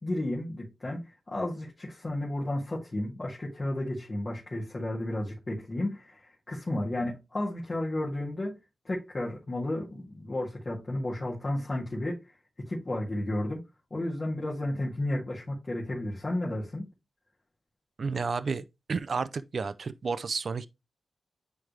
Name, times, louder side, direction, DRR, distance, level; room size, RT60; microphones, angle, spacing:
voice 1, 0.0-8.6 8.8-12.2 12.6-13.6 13.9-16.9, left 1 dB, 35° left, 2.0 m, -32 dB
voice 2, 18.0-20.7, right 5 dB, 55° right, 0.5 m, -31 dB
9.3 x 3.4 x 3.2 m
wide cardioid pair, 100°, 0 cm